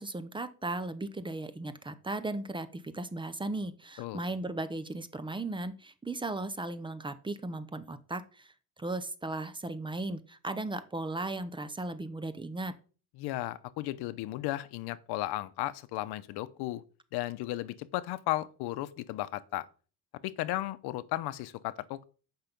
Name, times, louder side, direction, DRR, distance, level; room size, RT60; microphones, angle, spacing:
voice 1, 0.0-8.5 8.8-12.8, right 2 dB, 15° right, 0.7 m, -36 dB
voice 2, 13.2-16.8 17.1-19.7 20.2-22.0, left 16 dB, 85° left, 0.7 m, -35 dB
8.1 x 5.6 x 5.2 m
cardioid pair, 120°, 38 cm